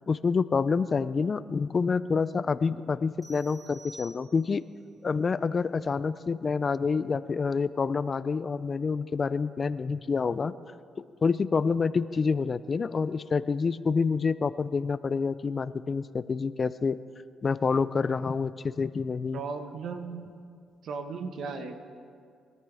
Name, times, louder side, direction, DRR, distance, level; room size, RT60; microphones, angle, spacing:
voice 1, 0.0-4.6 5.0-10.5 11.0-17.0 17.4-19.4, left 5 dB, 40° left, 15 dB, 0.4 m, -27 dB
sound 1, 3.2-4.7, right 2 dB, ahead, 4.2 m, -50 dB
voice 2, 19.3-20.4 20.8-21.7, right 5 dB, 65° right, 6 dB, 1.3 m, -36 dB
23.0 x 13.5 x 3.5 m, 2.3 s
cardioid pair, 90°, 0 cm